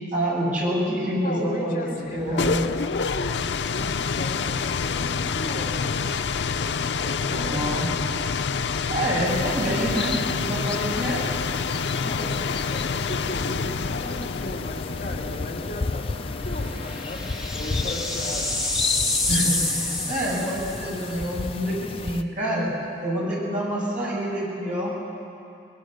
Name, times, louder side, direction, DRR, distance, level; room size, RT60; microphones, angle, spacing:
voice 1, 0.1-2.6 7.3-7.9 8.9-11.2 19.3-22.7 23.0-24.9, equal, 50° right, -5 dB, 7.2 m, -27 dB
voice 2, 1.2-6.1 6.6-7.6 12.0-17.2 17.5-18.5, left 1 dB, 50° left, -3 dB, 3.1 m, -36 dB
sound 1, 2.1-18.8, left 5 dB, 90° left, 0.5 m, -28 dB
sound 2, 9.2-22.2, left 4 dB, 30° left, 0.5 m, -33 dB
sound 3, 16.3-21.0, left 2 dB, 5° right, 2.0 m, -28 dB
23.5 x 19.5 x 6.5 m, 2.6 s
head